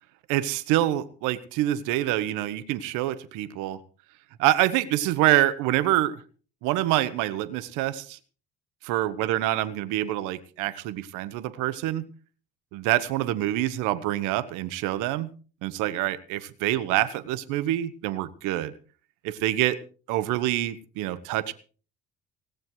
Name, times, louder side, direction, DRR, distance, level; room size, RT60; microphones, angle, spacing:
voice 1, 0.3-3.8 4.4-6.2 6.6-8.2 8.8-12.1 12.7-15.3 15.6-18.7 19.2-19.8 20.1-21.5, right 14 dB, 75° right, 16 dB, 1.3 m, -26 dB
18.5 x 17.5 x 3.2 m, 0.39 s
hypercardioid pair, 65°, 31 cm